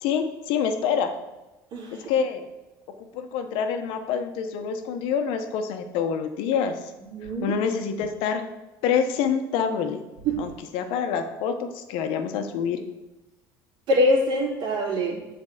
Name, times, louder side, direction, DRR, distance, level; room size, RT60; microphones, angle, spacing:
voice 1, 0.0-1.1 2.1-2.4 3.0-6.9 7.4-8.4 8.8-10.0 10.4-12.8, left 7 dB, 75° left, 7 dB, 1.0 m, -26 dB
voice 2, 1.7-2.1 7.0-7.5 10.2-10.4 13.9-15.2, equal, 70° right, -6 dB, 2.7 m, -24 dB
7.7 x 4.6 x 6.5 m, 1.0 s
supercardioid pair, 105°, 9 cm